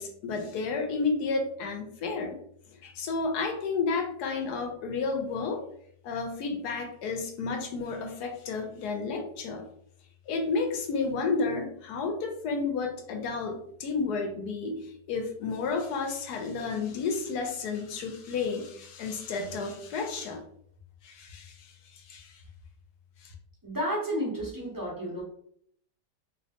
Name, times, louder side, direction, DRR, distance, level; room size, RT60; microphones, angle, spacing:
voice 1, 0.0-2.4 2.8-5.6 6.0-9.6 10.3-20.4 21.0-22.4 23.2-23.3, left 4 dB, 75° left, 4 dB, 1.2 m, -31 dB
voice 2, 23.6-25.2, equal, 20° right, -5 dB, 0.5 m, -31 dB
3.1 x 3.1 x 2.8 m, 0.66 s
omnidirectional pair, 1.8 m